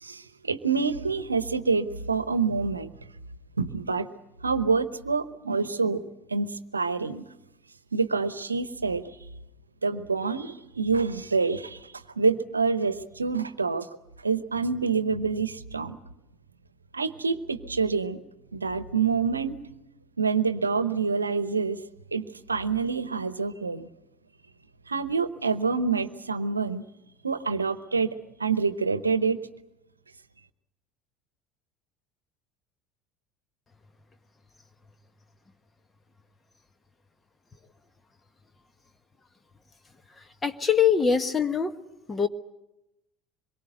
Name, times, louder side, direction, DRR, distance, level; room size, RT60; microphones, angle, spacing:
voice 1, 0.0-2.9 3.6-4.1 4.4-6.0 6.3-7.2 7.9-9.0 9.8-13.9 14.2-16.0 16.9-18.2 18.5-19.5 20.2-21.8 22.1-23.9 24.9-26.8 27.2-28.1 28.4-29.4, right 4 dB, 85° right, 14 dB, 0.9 m, -27 dB
voice 2, 40.2-41.7 42.1-42.3, left 7 dB, 20° left, 10 dB, 1.2 m, -23 dB
25.5 x 22.5 x 8.0 m, 0.94 s
figure-of-eight pair, 70°, 0 cm